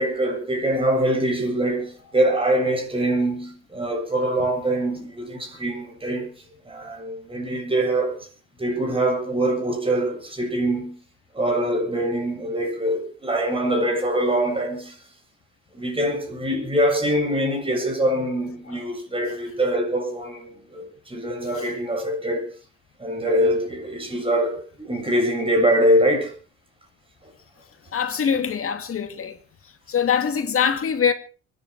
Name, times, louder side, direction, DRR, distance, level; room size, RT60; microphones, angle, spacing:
voice 1, 0.0-6.3 6.7-8.2 8.6-11.0 11.3-15.0 15.7-22.5 23.0-26.3, right 1 dB, 15° right, 7.9 m, -23 dB
voice 2, 27.9-29.4 29.9-31.1, left 7 dB, 45° left, 2.4 m, -23 dB
25.0 x 11.0 x 4.8 m
cardioid pair, 125°, 32 cm